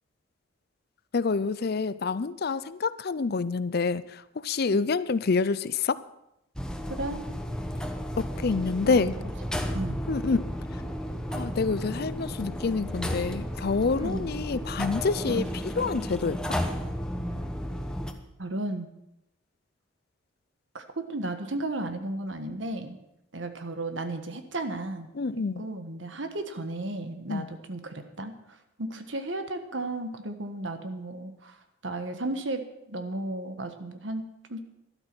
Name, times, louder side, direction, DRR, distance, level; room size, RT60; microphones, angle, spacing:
voice 1, 1.1-6.0 8.2-9.2 10.1-10.4 10.7-10.8 11.3-16.6 25.2-25.7 27.3-27.5, left 4 dB, 55° left, 16 dB, 0.5 m, -27 dB
sound 1, 6.5-18.1, equal, 5° left, 1.0 m, -33 dB
voice 2, 8.8-9.2 9.7-10.0 14.0-14.3 15.3-15.4 18.4-18.9 20.7-23.0 23.3-25.1 25.6-28.3 28.8-31.6 31.8-34.6, right 2 dB, 70° right, 8 dB, 1.5 m, -34 dB
12.5 x 12.0 x 6.1 m, 0.83 s
head